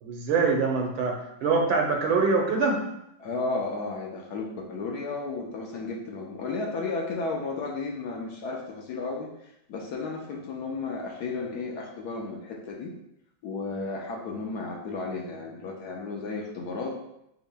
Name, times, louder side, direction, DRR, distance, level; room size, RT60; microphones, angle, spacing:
voice 1, 0.0-2.9, right 4 dB, 85° right, 2 dB, 1.6 m, -24 dB
voice 2, 3.2-9.3 9.7-12.9 13.4-16.9, left 3 dB, 65° left, -1 dB, 1.1 m, -33 dB
8.2 x 2.9 x 2.2 m, 0.81 s
omnidirectional pair, 2.1 m